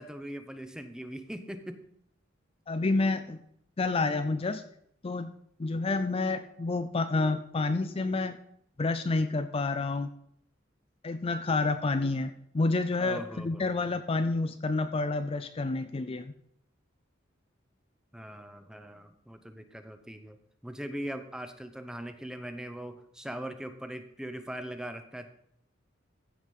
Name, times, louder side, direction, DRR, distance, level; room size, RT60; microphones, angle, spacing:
voice 1, 0.0-1.8 13.0-14.0 18.1-20.4 20.6-25.3, right 1 dB, 5° right, 9 dB, 0.8 m, -41 dB
voice 2, 2.7-3.4 3.8-4.6 5.0-5.3 5.6-8.4 8.8-10.1 11.0-16.3, left 3 dB, 30° left, 10 dB, 0.4 m, -29 dB
14.5 x 4.9 x 5.4 m, 0.68 s
head